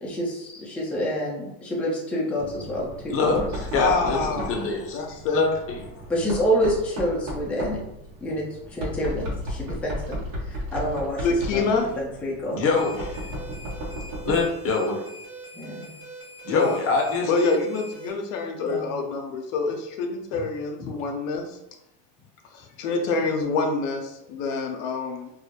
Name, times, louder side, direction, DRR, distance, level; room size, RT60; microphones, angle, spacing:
voice 1, 0.0-3.5 6.1-7.8 8.2-8.4 8.7-10.2 10.4-11.3 11.5-11.6 12.0-12.6 15.5-15.9 18.7-18.9, equal, 5° left, -5 dB, 0.4 m, -27 dB
Knock, 2.4-14.6, equal, 55° right, 0.9 m, -35 dB
voice 2, 3.1-5.0 5.3-6.0 12.5-13.2 14.2-15.0 16.4-17.3 20.8-20.9, left 4 dB, 35° left, 0 dB, 0.7 m, -24 dB
voice 3, 3.8-5.4 11.2-11.9 16.5-16.8 17.2-21.6 22.5-25.3, left 3 dB, 70° left, 3 dB, 0.6 m, -27 dB
sound 1, 12.8-18.1, right 1 dB, 35° right, 1.1 m, -42 dB
2.3 x 2.0 x 2.8 m, 0.86 s
supercardioid pair, 105°, 41 cm